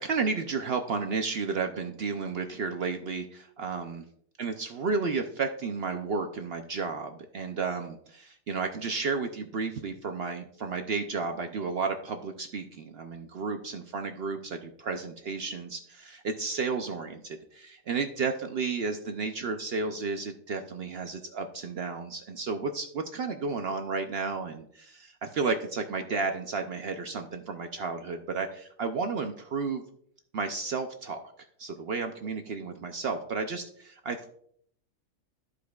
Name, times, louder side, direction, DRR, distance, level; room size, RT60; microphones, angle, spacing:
voice 1, 0.0-4.0 4.4-29.8 30.3-31.2 31.6-34.3, right 4 dB, 60° right, 6 dB, 0.7 m, -32 dB
13.5 x 4.9 x 2.3 m, 0.66 s
omnidirectional pair, 1.5 m